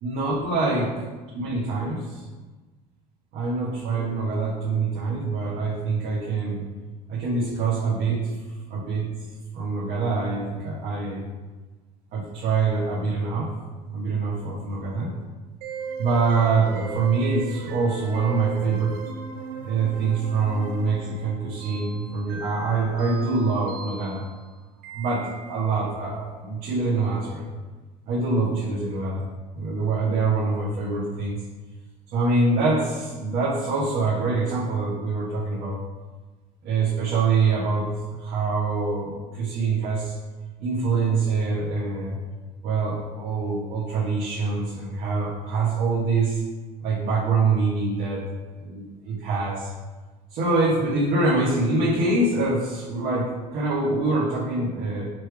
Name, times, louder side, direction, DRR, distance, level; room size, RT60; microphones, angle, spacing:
voice 1, 0.0-0.9 1.3-2.2 3.3-6.6 7.1-8.2 8.7-9.1 9.5-11.2 12.1-13.5 13.9-15.1 16.0-18.9 19.6-24.2 24.9-27.5 28.1-29.2 29.5-31.4 32.1-35.8 36.6-40.1 40.6-42.2 42.6-46.4 46.8-48.2 48.6-49.7 50.3-55.1, right 3 dB, 60° right, -7 dB, 1.4 m, -25 dB
sound 1, 15.6-25.8, right 6 dB, 80° right, 0.6 m, -38 dB
6.0 x 3.3 x 4.8 m, 1.3 s
cardioid pair, 120°, 17 cm